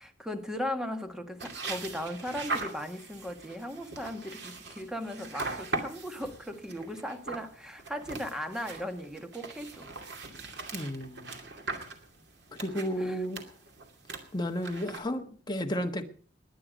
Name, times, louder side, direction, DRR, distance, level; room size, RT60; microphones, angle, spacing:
voice 1, 0.0-9.9 13.0-13.2, equal, 5° right, 1.5 m, -37 dB
sound 1, 1.4-15.0, right 3 dB, 65° right, 2.6 m, -40 dB
voice 2, 10.7-11.3 12.6-13.4 14.3-16.0, equal, 25° left, 1.3 m, -32 dB
20.5 x 9.9 x 5.2 m
head